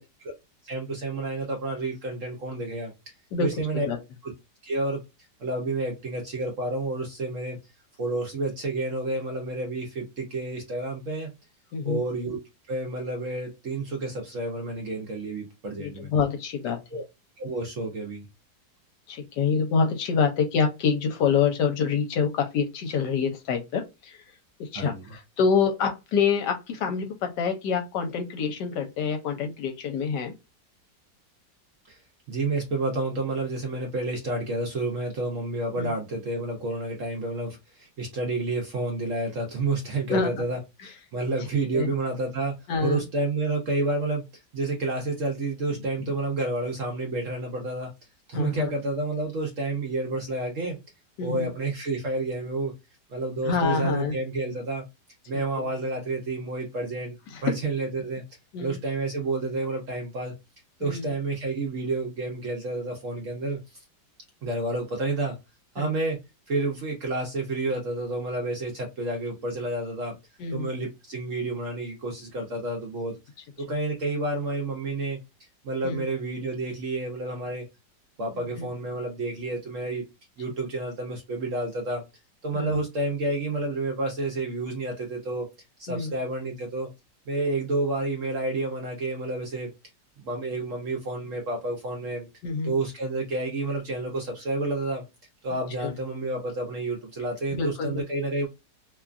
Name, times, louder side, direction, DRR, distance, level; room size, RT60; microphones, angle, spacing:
voice 1, 0.6-2.9 3.4-3.9 4.2-4.3 4.6-5.0 5.4-7.6 8.0-11.3 11.8-12.4 12.7-16.1 16.9-17.0 17.4-18.3 24.7-25.0 31.9-32.0 32.3-42.5 42.8-44.2 44.5-47.9 48.3-50.8 51.2-52.7 53.1-54.8 55.3-57.2 57.4-58.2 58.6-60.3 60.8-63.8 64.4-65.4 65.7-66.2 66.5-70.1 70.5-73.2 73.6-75.2 75.6-77.7 78.2-80.0 80.4-82.0 82.4-85.5 85.8-86.9 87.3-89.7 90.2-92.3 92.6-95.0 95.4-98.5, right 2 dB, 60° right, 0.8 m, -30 dB
voice 2, 3.3-4.0 11.7-12.0 15.8-16.8 19.1-24.2 24.6-30.3 35.8-35.9 40.1-40.4 40.8-40.9 41.7-41.9 42.7-43.0 48.3-48.7 51.2-51.5 53.4-54.1 55.6-55.7 57.3-57.5 58.5-58.8 60.8-61.1 65.8-65.9 70.4-70.7 75.8-76.0 78.3-78.7 82.5-82.8 85.9-86.1 92.4-92.7 95.8-95.9 97.5-98.0, left 5 dB, 75° left, 1.2 m, -26 dB
2.9 x 2.2 x 2.4 m
omnidirectional pair, 1.9 m